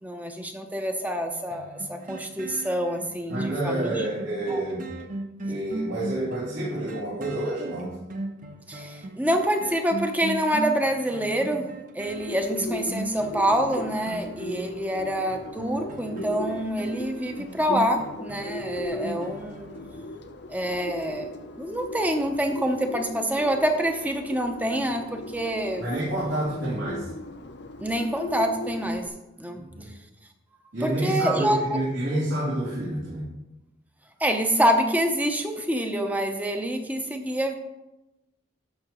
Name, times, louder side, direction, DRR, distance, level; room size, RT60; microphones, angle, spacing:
voice 1, 0.0-4.1 4.5-4.6 8.7-19.7 20.5-25.8 27.8-29.1 29.4-29.6 30.8-31.8 34.2-37.5, equal, 10° right, 5 dB, 0.6 m, -26 dB
sound 1, 1.5-20.2 20.7-20.8, right 2 dB, 45° right, 0.9 m, -37 dB
voice 2, 3.3-4.9 5.4-7.9 25.8-27.1 29.5-29.9 30.7-33.3, right 1 dB, 90° right, -9 dB, 2.9 m, -28 dB
Bird, 12.1-29.1, left 1 dB, 60° left, 0.6 m, -38 dB
12.5 x 5.8 x 3.0 m, 0.98 s
head